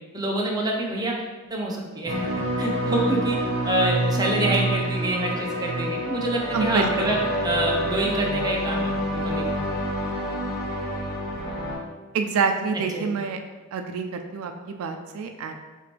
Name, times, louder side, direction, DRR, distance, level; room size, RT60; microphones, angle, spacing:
voice 1, 0.1-1.1 1.5-2.3 2.6-3.4 3.7-7.2 7.4-9.4 12.9-13.1, right 1 dB, 20° right, -1 dB, 0.6 m, -26 dB
sound 1, 2.1-11.8, equal, 40° left, 1.5 m, -27 dB
voice 2, 6.5-7.1 12.1-13.4 13.7-15.5, right 5 dB, 80° right, 6 dB, 0.3 m, -27 dB
4.7 x 2.5 x 3.3 m, 1.3 s
head